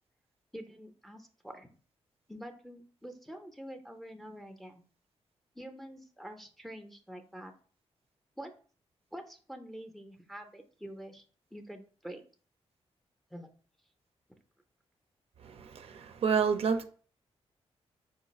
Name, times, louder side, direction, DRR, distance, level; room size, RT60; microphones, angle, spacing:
voice 1, 0.5-1.7 2.3-4.8 5.6-7.5 8.4-8.5 9.1-11.2 11.5-12.2 13.3-13.5, equal, ahead, 0.5 m, -46 dB
voice 2, 15.4-16.8, right 6 dB, 60° right, 0.4 m, -29 dB
4.4 x 2.4 x 4.0 m
wide cardioid pair, 135°, 11 cm